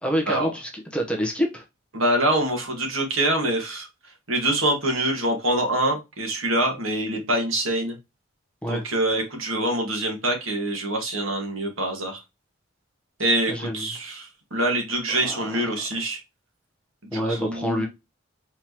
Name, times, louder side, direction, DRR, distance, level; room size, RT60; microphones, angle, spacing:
voice 1, 0.0-1.6 8.6-8.8 13.5-13.9 15.1-15.6 17.1-17.9, equal, 5° left, 0.9 m, -27 dB
voice 2, 1.9-3.9 4.3-8.0 8.7-12.2 13.2-16.2 17.0-17.9, right 1 dB, 80° right, 1.9 m, -25 dB
4.5 x 3.7 x 3.0 m
head